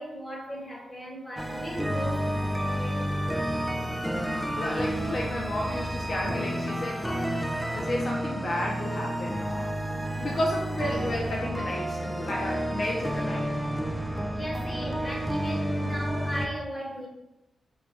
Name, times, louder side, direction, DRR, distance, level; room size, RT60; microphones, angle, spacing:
voice 1, 0.0-3.0 14.3-17.1, equal, 20° left, -2 dB, 1.2 m, -37 dB
sound 1, 1.4-16.5, equal, ahead, 0.4 m, -30 dB
voice 2, 3.8-9.7 10.2-13.6, left 1 dB, 50° left, -2 dB, 0.6 m, -33 dB
4.7 x 2.2 x 3.9 m, 0.90 s
wide cardioid pair, 110°, 0 cm